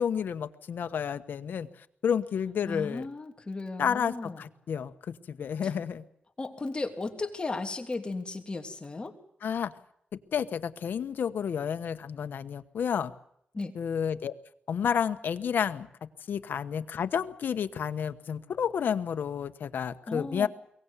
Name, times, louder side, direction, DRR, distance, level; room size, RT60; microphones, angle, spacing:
voice 1, 0.0-1.7 2.0-3.1 3.8-4.9 5.3-6.0 9.4-9.7 10.3-13.1 13.7-14.3 14.7-15.9 16.3-20.5, left 7 dB, 85° left, 10 dB, 1.1 m, -30 dB
voice 2, 2.7-4.4 5.6-5.7 6.4-9.1 13.5-13.7 20.1-20.5, left 3 dB, 30° left, 4 dB, 3.1 m, -35 dB
23.0 x 18.5 x 8.3 m, 0.73 s
wide cardioid pair, 95°, 3 cm